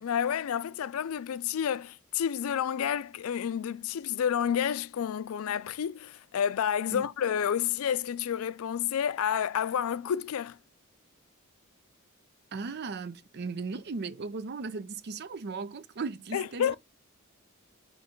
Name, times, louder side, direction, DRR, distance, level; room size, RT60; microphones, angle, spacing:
voice 1, 0.0-10.6 16.3-16.8, left 8 dB, 80° left, 0.4 m, -30 dB
voice 2, 12.5-16.8, right 4 dB, 50° right, 0.5 m, -37 dB
5.7 x 3.2 x 5.1 m
head